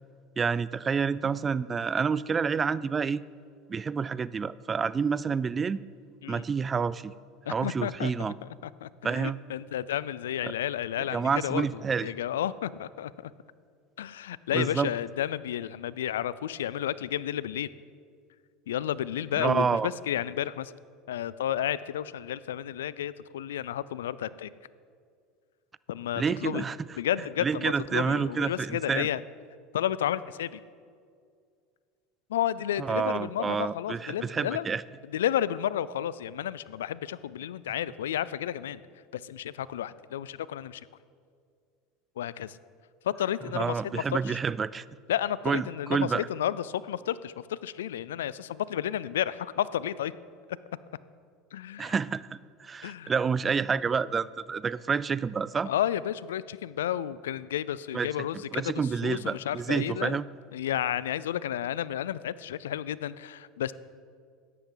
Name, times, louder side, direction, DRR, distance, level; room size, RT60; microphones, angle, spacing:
voice 1, 0.4-3.2 3.7-5.8 6.3-7.1 7.5-8.4 9.0-9.4 10.4-10.5 11.1-12.1 14.5-14.9 19.3-19.9 26.2-26.8 27.4-29.1 32.8-34.8 43.5-44.8 45.5-46.3 51.8-55.7 57.9-58.3 58.5-60.2, right 5 dB, 25° right, 19 dB, 0.3 m, -28 dB
voice 2, 7.5-8.5 8.8-13.3 14.0-17.7 18.7-20.7 21.1-24.5 25.9-26.6 27.0-29.2 29.7-30.6 32.3-34.7 35.1-38.8 39.1-40.9 42.2-42.6 43.0-44.4 45.1-50.2 51.5-52.0 52.8-53.1 55.7-60.2 60.5-63.7, left 11 dB, 90° left, 18 dB, 0.3 m, -32 dB
13.5 x 10.5 x 3.9 m, 2.2 s
hypercardioid pair, 95°, 0 cm